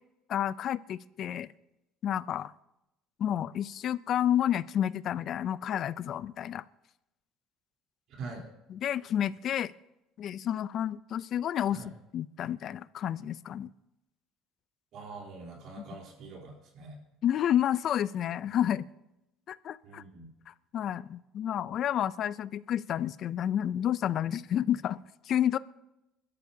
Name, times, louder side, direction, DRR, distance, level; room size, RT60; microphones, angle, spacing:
voice 1, 0.3-1.5 2.0-2.5 3.2-6.6 8.7-9.7 10.2-13.7 17.2-18.8 19.5-20.0 20.5-25.0 25.3-25.6, left 10 dB, 45° left, 18 dB, 0.4 m, -30 dB
voice 2, 14.9-17.0 19.8-20.3, right 3 dB, 60° right, -1 dB, 3.7 m, -44 dB
27.5 x 13.0 x 2.8 m, 0.92 s
cardioid pair, 140°, 0 cm